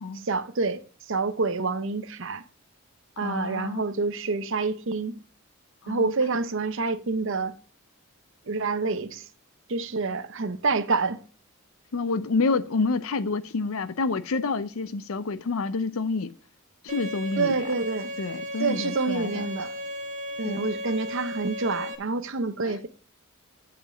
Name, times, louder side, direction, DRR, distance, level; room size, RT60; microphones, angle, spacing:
voice 1, 0.1-2.4 3.2-5.2 5.9-7.5 8.5-9.3 9.7-11.2 17.4-18.1 18.6-19.7 20.4-22.9, right 3 dB, 60° right, 0.8 m, -27 dB
voice 2, 3.2-3.9 5.8-6.1 11.9-16.3 16.8-17.5 18.2-19.5 20.4-20.7 22.6-22.8, left 4 dB, 70° left, 0.5 m, -28 dB
Bowed string instrument, 16.9-21.9, equal, 35° right, 1.4 m, -35 dB
8.0 x 5.1 x 7.0 m
head